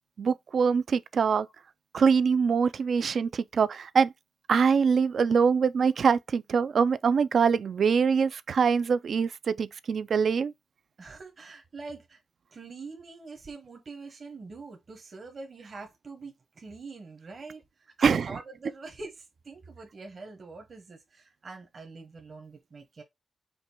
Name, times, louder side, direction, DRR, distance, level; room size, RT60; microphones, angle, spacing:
voice 1, 0.2-1.5 1.9-4.1 4.5-10.5 18.0-18.3, right 6 dB, 70° right, 0.3 m, -24 dB
voice 2, 11.0-12.2 12.5-23.0, right 3 dB, 50° right, 1.1 m, -44 dB
5.1 x 2.2 x 4.4 m
cardioid pair, 85°, 0 cm